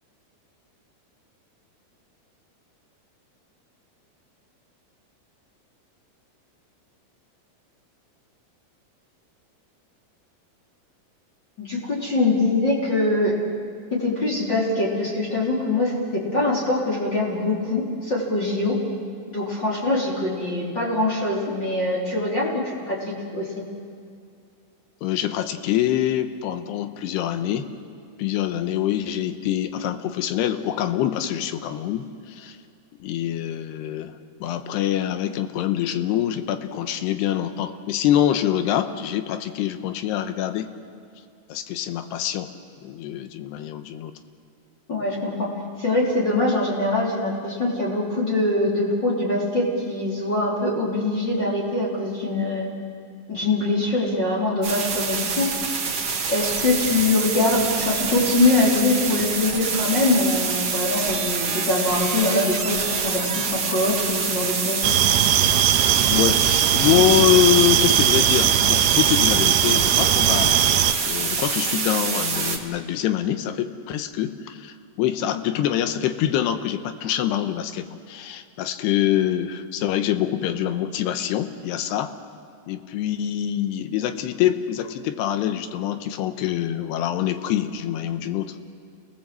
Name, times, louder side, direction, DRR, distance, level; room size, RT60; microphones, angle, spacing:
voice 1, 11.6-13.3 13.9-18.8 19.3-23.5 44.9-45.5 45.8-52.7 53.3-55.5 56.3-64.8, left 2 dB, 30° left, -4 dB, 3.5 m, -23 dB
voice 2, 25.0-27.7 28.2-32.6 33.0-34.1 34.4-40.7 41.5-42.5 42.8-44.1 66.1-70.7 71.0-82.1 82.7-88.6, left 11 dB, 80° left, 9 dB, 3.0 m, -25 dB
sound 1, 54.6-72.6, right 5 dB, 50° right, 1.3 m, -26 dB
sound 2, 64.8-70.9, right 11 dB, 80° right, 2.9 m, -19 dB
29.5 x 18.0 x 7.6 m, 2.3 s
omnidirectional pair, 4.8 m